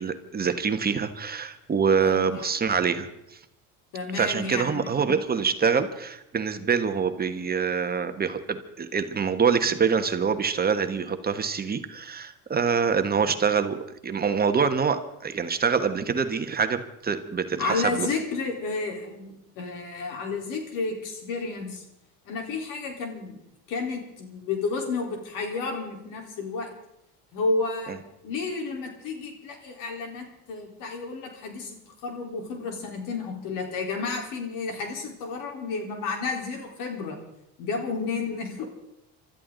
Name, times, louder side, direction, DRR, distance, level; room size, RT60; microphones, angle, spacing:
voice 1, 0.0-3.1 4.1-13.8 14.0-18.1, right 6 dB, 30° right, 8 dB, 1.3 m, -25 dB
voice 2, 2.0-2.5 3.9-4.9 17.6-21.8 22.3-23.4 23.7-26.7 27.3-27.9 28.2-37.2 37.6-38.6, left 4 dB, 70° left, 2 dB, 4.1 m, -31 dB
25.5 x 13.0 x 4.0 m, 0.83 s
supercardioid pair, 100°, 33 cm